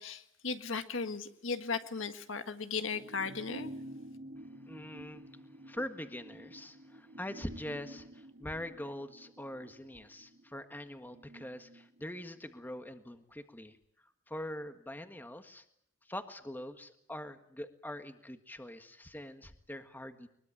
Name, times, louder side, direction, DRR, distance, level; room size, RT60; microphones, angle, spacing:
voice 1, 0.0-3.7, left 4 dB, 75° left, 9 dB, 1.7 m, -36 dB
sound 1, 2.9-12.8 13.1-13.2, right 1 dB, 55° right, 2.2 m, -50 dB
voice 2, 4.4-5.3 5.6-13.8 14.3-15.6 16.0-20.3, left 1 dB, 10° left, 8 dB, 1.7 m, -43 dB
23.0 x 22.0 x 9.0 m, 0.71 s
head